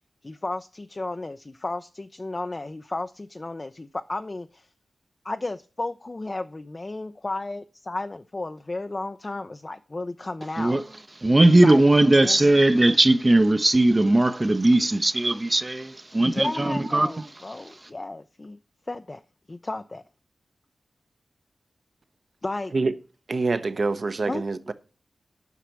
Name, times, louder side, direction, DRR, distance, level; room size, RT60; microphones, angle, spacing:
voice 1, 0.2-4.7 5.2-10.8 11.6-11.8 12.2-12.4 16.2-18.6 18.9-19.2 19.5-20.0 22.4-22.7 24.3-24.4, left 2 dB, 30° left, 0.5 m, -33 dB
voice 2, 11.2-17.2, right 2 dB, 25° right, 0.7 m, -19 dB
voice 3, 23.3-24.7, right 3 dB, 50° right, 0.9 m, -25 dB
8.2 x 5.8 x 7.4 m
wide cardioid pair, 85°, 0 cm